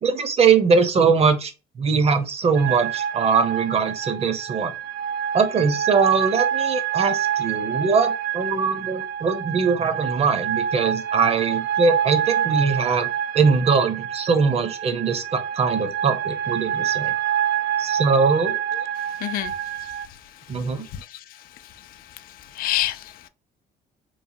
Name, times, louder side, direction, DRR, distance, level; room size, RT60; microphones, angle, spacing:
voice 1, 0.0-1.5 1.8-4.7 5.3-13.1 13.3-17.1 17.8-18.6 20.5-20.9, right 5 dB, 35° right, 0.7 m, -21 dB
sound 1, 2.6-20.1, right 9 dB, 85° right, 0.4 m, -27 dB
voice 2, 19.2-19.5 20.9-21.2 22.5-23.3, left 13 dB, 60° left, 0.4 m, -27 dB
3.1 x 2.1 x 2.6 m
cardioid pair, 110°, 17 cm